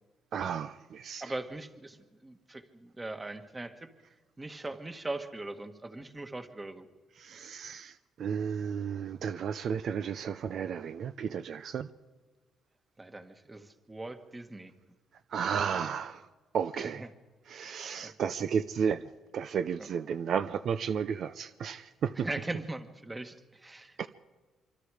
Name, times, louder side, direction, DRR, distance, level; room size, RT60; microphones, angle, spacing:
voice 1, 0.3-1.2 7.2-11.9 15.3-16.2 16.5-17.0 17.5-19.0 19.3-22.1 24.0-24.1, right 7 dB, 65° right, 12 dB, 0.7 m, -33 dB
voice 2, 1.2-3.9 4.4-6.9 13.0-14.7 16.8-17.1 18.0-18.1 19.8-19.9 22.1-24.0, right 2 dB, 20° right, 8 dB, 1.7 m, -40 dB
25.0 x 25.0 x 5.0 m, 1.4 s
cardioid pair, 90°, 0 cm